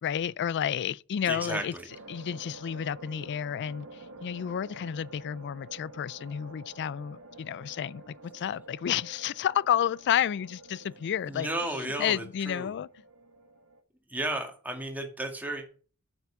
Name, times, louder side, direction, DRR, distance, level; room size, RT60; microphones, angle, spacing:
voice 1, 0.0-1.7 2.1-12.9, left 9 dB, 50° left, 0.3 m, -31 dB
voice 2, 1.3-1.9 11.3-12.7 14.1-15.7, right 1 dB, 10° right, 2.0 m, -33 dB
sound 1, 1.9-13.8, right 2 dB, 75° right, 1.6 m, -50 dB
7.9 x 7.1 x 5.8 m
head